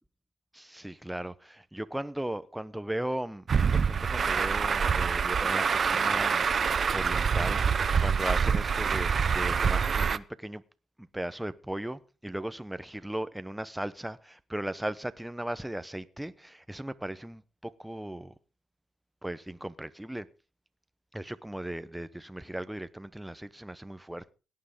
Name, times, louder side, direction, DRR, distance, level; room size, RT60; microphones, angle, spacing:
voice 1, 0.5-10.6 11.0-18.3 19.2-20.3 21.1-24.3, right 1 dB, 5° right, 0.9 m, -37 dB
Truck, 3.5-10.2, right 6 dB, 45° right, 0.7 m, -26 dB
17.5 x 9.6 x 5.1 m
cardioid pair, 90°, 0 cm